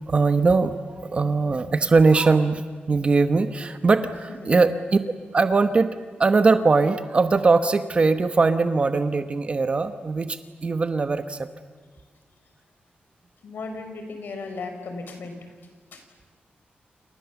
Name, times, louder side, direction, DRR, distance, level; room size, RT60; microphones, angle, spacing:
voice 1, 0.1-2.6 2.9-5.0 5.3-5.9 6.2-11.5, right 4 dB, 35° right, 10 dB, 1.1 m, -21 dB
voice 2, 13.4-15.4 15.9-16.0, left 3 dB, 75° left, 6 dB, 4.9 m, -36 dB
28.5 x 28.5 x 7.2 m, 1.5 s
wide cardioid pair, 140°, 3 cm